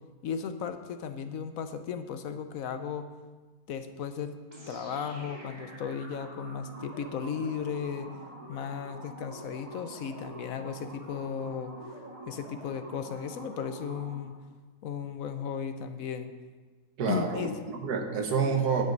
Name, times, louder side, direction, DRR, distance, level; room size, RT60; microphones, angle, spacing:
voice 1, 0.2-3.1 3.7-4.4 4.7-8.1 8.5-11.7 12.3-14.3 14.8-16.3 17.1-17.5, left 7 dB, 70° left, 9 dB, 1.1 m, -35 dB
sound 1, 4.5-14.4, right 1 dB, 25° right, 2.6 m, -46 dB
voice 2, 17.0-18.8, right 5 dB, 85° right, 3 dB, 1.7 m, -28 dB
10.0 x 7.9 x 5.3 m, 1.3 s
omnidirectional pair, 1.6 m